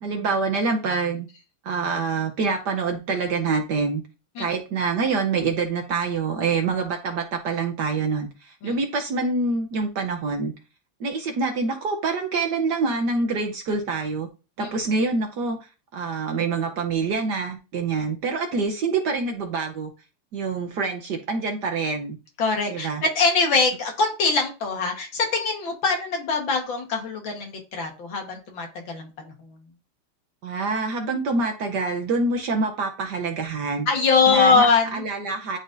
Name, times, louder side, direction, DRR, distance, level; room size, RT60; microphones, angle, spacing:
voice 1, 0.0-1.3 1.6-4.0 4.4-10.5 11.0-14.3 14.6-15.7 15.9-19.9 20.3-22.2 22.7-23.0 30.4-33.9 34.3-35.6, right 4 dB, 60° right, 3 dB, 1.2 m, -26 dB
voice 2, 22.4-29.3 33.9-35.0, left 4 dB, 60° left, 3 dB, 2.1 m, -22 dB
10.5 x 3.9 x 2.6 m, 0.31 s
omnidirectional pair, 2.4 m